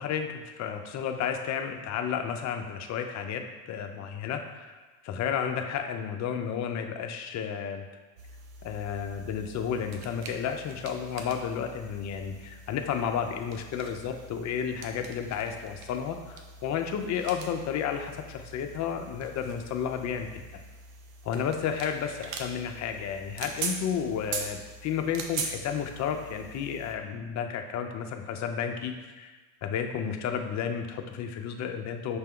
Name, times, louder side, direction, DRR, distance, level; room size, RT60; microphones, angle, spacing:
voice 1, 0.0-4.8 5.0-7.8 8.6-20.3 20.5-20.6 21.2-29.3 29.6-32.2, left 7 dB, 35° left, 5 dB, 0.5 m, -32 dB
sound 1, 8.2-27.0, right 4 dB, 65° right, 0.7 m, -42 dB
5.9 x 2.1 x 3.5 m, 1.3 s
hypercardioid pair, 85°, 49 cm